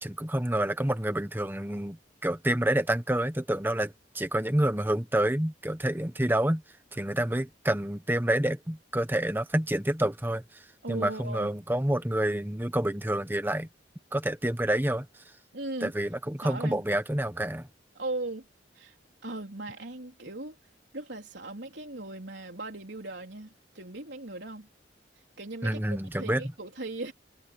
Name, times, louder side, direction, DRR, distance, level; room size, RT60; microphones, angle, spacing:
voice 1, 0.0-6.6 6.9-10.6 10.9-13.7 14.1-15.2 15.8-17.7 25.6-26.4, right 1 dB, 10° right, 1.1 m, -28 dB
voice 2, 10.8-11.5 15.5-15.9 16.4-16.8 18.0-18.4 18.7-19.0 19.2-20.6 20.9-24.7 25.4-25.8 26.2-27.1, right 2 dB, 70° right, 3.8 m, -38 dB
head